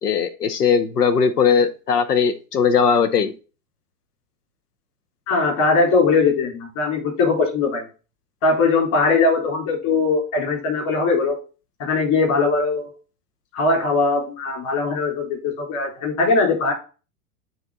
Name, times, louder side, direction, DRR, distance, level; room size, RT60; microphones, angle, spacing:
voice 1, 0.0-3.3, left 6 dB, 90° left, 12 dB, 0.9 m, -19 dB
voice 2, 5.3-7.9 8.4-11.4 11.8-12.9 13.5-16.7, left 3 dB, 45° left, 0 dB, 3.7 m, -20 dB
9.3 x 3.2 x 3.8 m, 0.34 s
hypercardioid pair, 95°, 45 cm